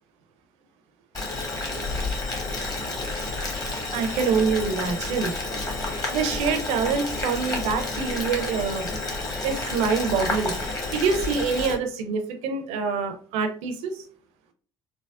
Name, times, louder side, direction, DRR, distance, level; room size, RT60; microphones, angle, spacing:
Boiling, 1.1-11.8, left 2 dB, 35° left, 1.1 m, -30 dB
voice 1, 3.9-5.3 6.1-8.9 9.4-14.0, right 5 dB, 70° right, 7 dB, 0.5 m, -26 dB
3.4 x 2.0 x 2.3 m, 0.44 s
hypercardioid pair, 60°, 11 cm